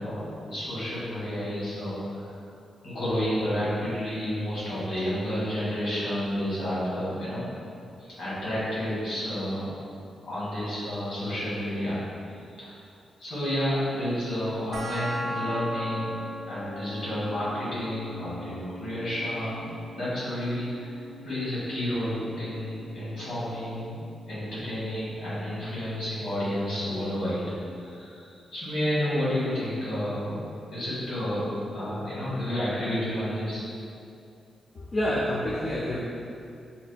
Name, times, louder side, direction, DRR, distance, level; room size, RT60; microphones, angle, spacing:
voice 1, 0.0-2.2 2.8-7.4 8.0-9.7 10.2-12.0 12.6-12.8 13.2-16.1 16.5-30.4 30.7-31.4 31.7-33.6, equal, 75° left, -10 dB, 1.5 m, -30 dB
sound 1, 14.7-25.7, equal, 55° right, 0.5 m, -40 dB
voice 2, 34.7-36.0, left 1 dB, 40° left, -5 dB, 0.4 m, -28 dB
4.1 x 2.6 x 2.3 m, 2.6 s
cardioid pair, 100°, 0 cm